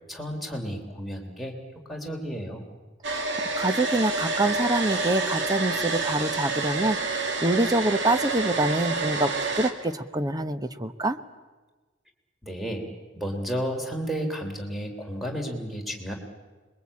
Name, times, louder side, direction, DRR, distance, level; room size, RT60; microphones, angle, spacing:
voice 1, 0.1-1.5 1.9-2.6 12.4-12.8 13.1-16.1, equal, ahead, 3 dB, 3.4 m, -32 dB
Domestic sounds home sounds, 3.0-9.7, right 3 dB, 65° right, 2.5 m, -28 dB
voice 2, 3.6-9.3 9.6-11.2, right 1 dB, 20° right, 10 dB, 1.0 m, -26 dB
26.5 x 22.0 x 8.6 m, 1.3 s
head